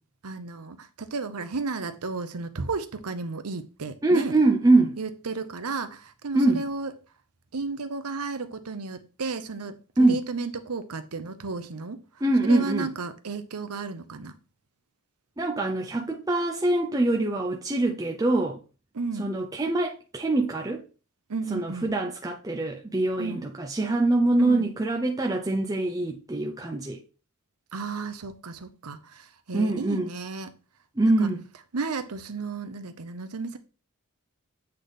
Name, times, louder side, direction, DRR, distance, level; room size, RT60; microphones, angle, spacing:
voice 1, 0.2-4.4 5.0-6.9 7.5-12.0 12.4-14.3 18.9-19.3 21.3-21.9 23.2-23.5 24.4-24.7 27.7-30.5 31.0-31.3 31.7-33.6, right 4 dB, 90° right, 0.8 m, -33 dB
voice 2, 4.0-5.0 6.3-6.6 10.0-10.2 12.2-12.9 15.4-18.6 19.2-20.8 21.5-27.0 29.5-30.1 31.0-31.5, right 2 dB, 15° right, 0.5 m, -24 dB
8.2 x 3.4 x 4.1 m
head